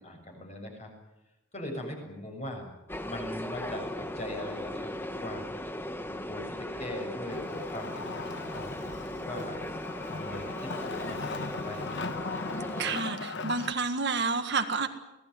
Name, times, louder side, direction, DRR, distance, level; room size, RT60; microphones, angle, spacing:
voice 1, 0.0-0.9 1.5-2.7 3.0-5.5 6.1-9.6 10.1-12.1, left 1 dB, 30° left, 3 dB, 6.9 m, -40 dB
sound 1, 2.9-13.0, left 1 dB, 10° left, 1.2 m, -38 dB
Wood, 7.3-13.7, left 3 dB, 55° left, 1.2 m, -38 dB
voice 2, 12.8-14.9, right 4 dB, 50° right, 6 dB, 1.8 m, -29 dB
26.0 x 18.0 x 9.5 m, 0.98 s
head